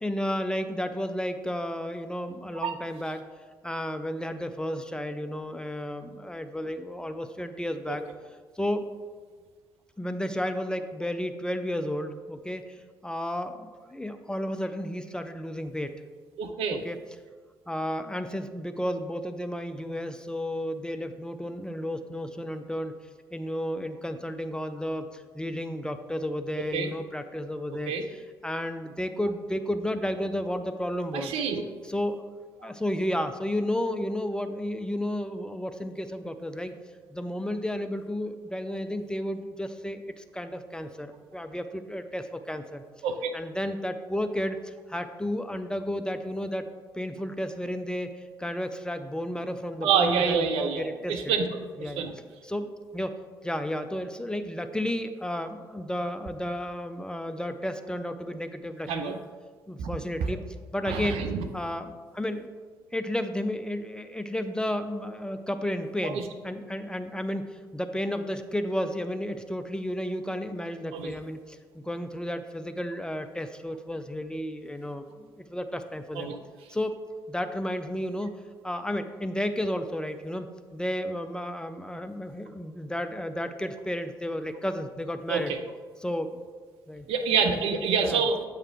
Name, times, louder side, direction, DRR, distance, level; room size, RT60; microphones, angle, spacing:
voice 1, 0.0-3.2 3.6-8.0 8.6-8.9 10.0-16.0 16.7-17.0 17.7-23.0 23.3-31.4 31.8-32.2 32.6-36.7 37.1-42.8 43.3-46.7 46.9-51.3 51.8-52.0 52.4-53.2 53.4-59.1 59.7-60.4 60.7-61.3 61.5-62.5 62.9-76.3 76.7-77.0 77.3-78.4 78.6-85.6 86.0-86.4 86.9-87.1 87.9-88.2, equal, 10° left, 8 dB, 0.5 m, -32 dB
voice 2, 16.4-16.8 26.7-26.9 27.9-28.0 31.1-31.6 43.0-43.4 49.8-51.4 51.8-52.1 58.9-59.2 59.8-59.9 60.9-61.4 66.0-66.1 70.9-71.1 76.2-76.4 85.3-85.6 87.1-88.4, right 6 dB, 65° right, 6 dB, 0.6 m, -27 dB
8.5 x 3.3 x 4.7 m, 1.5 s
figure-of-eight pair, 45°, 11 cm